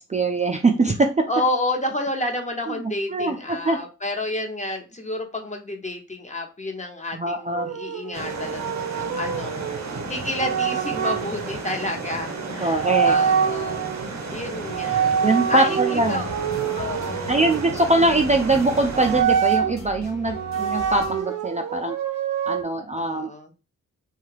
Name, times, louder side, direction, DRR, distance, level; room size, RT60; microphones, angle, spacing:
voice 1, 0.0-1.1 2.7-2.8 3.1-3.8 7.1-7.8 12.6-13.2 15.2-16.2 17.3-21.9 22.5-23.3, right 2 dB, 25° right, 3 dB, 0.4 m, -22 dB
voice 2, 1.3-9.7 10.1-16.3 16.7-17.5 23.0-23.5, left 1 dB, 20° left, 3 dB, 0.8 m, -30 dB
sound 1, 7.5-11.2 12.3-12.5 12.7-14.0 14.7-18.1 18.9-19.7 20.3-22.6, right 8 dB, 75° right, 0.5 m, -25 dB
sound 2, 8.1-19.2, right 3 dB, 55° right, 0.9 m, -33 dB
sound 3, 15.9-21.2, left 2 dB, 55° left, 0.8 m, -39 dB
2.8 x 2.3 x 3.2 m, 0.31 s
cardioid pair, 55°, 32 cm